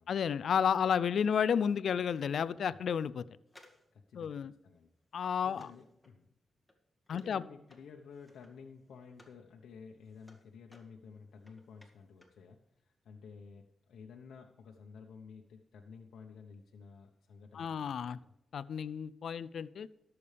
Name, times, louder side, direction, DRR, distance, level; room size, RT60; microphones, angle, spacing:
voice 1, 0.1-3.2 4.2-4.5 5.1-5.7 7.1-7.4 17.5-18.2 18.5-19.9, left 7 dB, 65° left, 0.4 m, -31 dB
sound 1, 3.5-9.4 9.8-12.5 12.7-12.8, left 1 dB, 5° left, 1.9 m, -64 dB
voice 2, 3.9-4.9 5.2-6.3 7.1-18.2, left 5 dB, 90° left, 1.0 m, -53 dB
19.0 x 7.0 x 3.4 m
wide cardioid pair, 120°, 0 cm